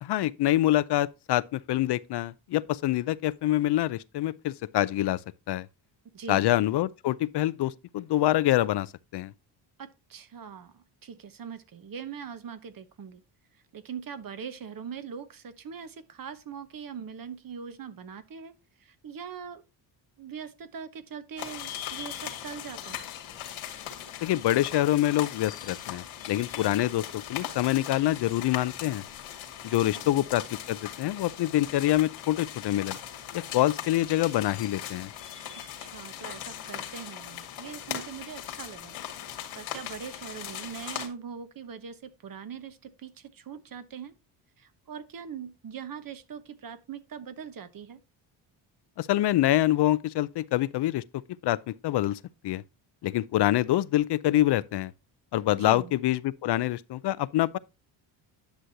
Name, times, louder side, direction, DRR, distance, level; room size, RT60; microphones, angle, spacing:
voice 1, 0.0-5.2 5.5-5.7 6.3-9.3 24.2-29.0 29.6-33.0 33.3-35.1 49.0-51.0 51.4-52.6 53.0-54.9 55.3-57.6, left 14 dB, 55° left, 0.6 m, -26 dB
voice 2, 6.1-6.5 9.8-13.2 13.7-18.5 18.8-19.6 20.2-23.1 29.7-30.1 35.5-39.0 39.5-44.1 44.6-48.0 55.5-55.9, right 7 dB, 45° right, 1.0 m, -42 dB
sound 1, 21.4-41.1, left 11 dB, 80° left, 2.0 m, -39 dB
10.5 x 6.2 x 2.8 m
supercardioid pair, 70°, 49 cm